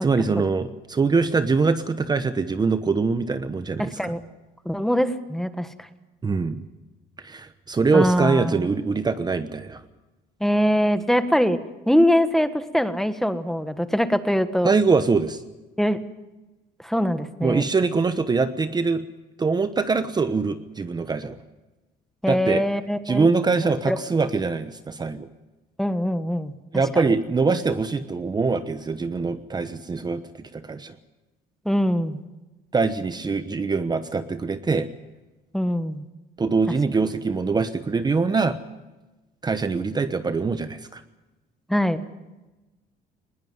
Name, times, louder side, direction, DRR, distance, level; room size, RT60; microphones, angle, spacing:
voice 1, 0.0-4.1 6.2-6.6 7.2-9.8 14.6-15.4 17.4-19.0 19.4-21.4 22.3-22.6 23.1-25.3 26.7-30.9 32.7-34.9 36.4-38.6 39.4-41.0, right 4 dB, 25° right, 11 dB, 1.0 m, -23 dB
voice 2, 3.8-4.2 4.6-5.7 7.9-8.7 10.4-11.6 11.9-14.7 15.8-16.0 16.8-17.6 22.2-23.3 23.6-24.0 25.8-26.5 26.9-27.1 31.6-32.2 35.5-36.0 41.7-42.0, equal, ahead, 11 dB, 1.4 m, -22 dB
20.5 x 18.0 x 9.5 m, 1.1 s
cardioid pair, 110°, 17 cm